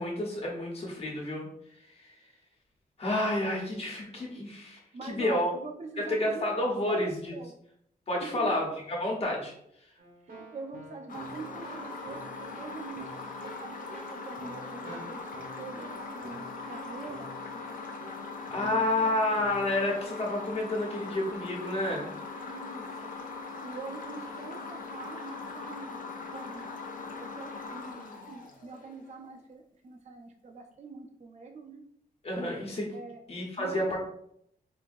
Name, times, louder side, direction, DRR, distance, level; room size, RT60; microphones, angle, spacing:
voice 1, 0.0-1.5 3.0-5.5 6.0-7.3 8.1-9.5 14.8-15.0 18.5-22.1 32.2-32.9 33.3-34.0, left 1 dB, 40° left, -2 dB, 1.1 m, -30 dB
voice 2, 4.9-7.5 8.2-8.5 10.3-13.2 13.6-13.8 14.1-15.2 15.5-17.3 18.6-19.1 22.4-23.1 23.6-26.0 26.3-26.8 27.1-27.9 28.3-31.8 32.9-33.2 33.6-34.0, right 3 dB, 45° right, 4 dB, 0.5 m, -43 dB
Keyboard (musical), 10.0-20.3, right 1 dB, 65° right, 1.1 m, -50 dB
sound 1, 11.1-29.1, left 3 dB, 60° left, 0.6 m, -41 dB
4.5 x 2.7 x 2.6 m, 0.72 s
wide cardioid pair, 150°, 16 cm